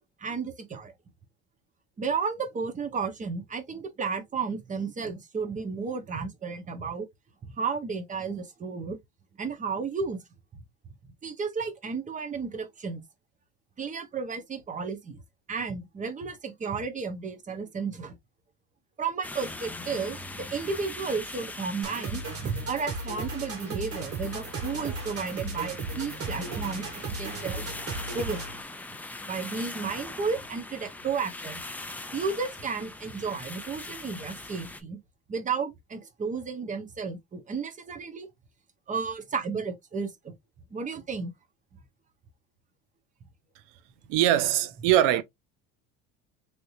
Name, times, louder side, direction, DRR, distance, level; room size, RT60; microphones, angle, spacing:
voice 1, 0.2-0.9 2.0-7.1 7.6-9.0 9.4-10.2 11.2-13.0 13.8-15.2 15.5-18.2 19.0-27.7 28.1-28.4 29.3-31.6 32.1-35.0 35.3-38.3 38.9-40.3 40.7-41.3 45.0-45.1, right 5 dB, 25° right, 0.9 m, -33 dB
sound 1, 19.2-34.8, left 2 dB, 5° left, 0.4 m, -41 dB
sound 2, 21.8-28.6, right 3 dB, 45° right, 1.7 m, -36 dB
voice 2, 44.1-45.2, right 12 dB, 70° right, 0.7 m, -22 dB
3.3 x 2.9 x 2.6 m
supercardioid pair, 120°, 32 cm